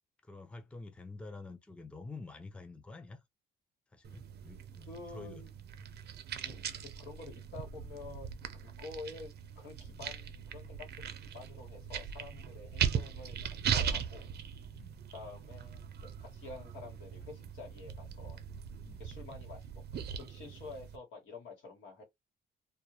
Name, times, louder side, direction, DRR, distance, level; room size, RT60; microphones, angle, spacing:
voice 1, 0.2-3.2 3.9-5.4 14.7-15.0 18.5-19.0, left 3 dB, 5° left, 0.4 m, -48 dB
sound 1, 4.0-21.0, right 8 dB, 55° right, 0.5 m, -39 dB
voice 2, 4.9-5.5 6.4-14.3 15.1-18.4 19.0-22.0, left 3 dB, 85° left, 1.3 m, -49 dB
2.2 x 2.2 x 2.9 m
cardioid pair, 90°, 20 cm